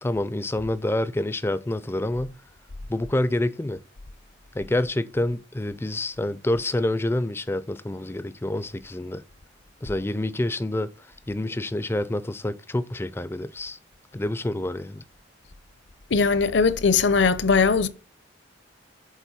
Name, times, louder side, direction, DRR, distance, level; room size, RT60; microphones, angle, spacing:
voice 1, 0.0-2.4 2.9-3.8 4.5-9.2 9.8-13.8 14.1-15.0, left 1 dB, 10° left, 0.3 m, -27 dB
voice 2, 16.1-17.9, left 5 dB, 65° left, 0.6 m, -20 dB
7.2 x 4.2 x 4.1 m
head